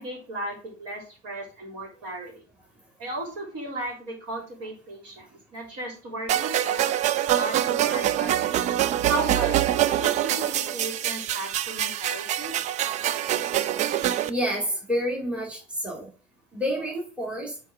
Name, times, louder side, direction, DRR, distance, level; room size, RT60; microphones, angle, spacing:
voice 1, 0.0-2.4 3.0-7.1 7.3-8.6 9.1-12.6, right 1 dB, 40° right, 0 dB, 3.5 m, -35 dB
sound 1, 6.3-14.3, right 11 dB, 20° right, 0.3 m, -25 dB
voice 2, 14.3-16.1 16.5-17.6, equal, 5° right, -1 dB, 2.5 m, -29 dB
9.1 x 3.7 x 3.7 m, 0.36 s
figure-of-eight pair, 80°, 36 cm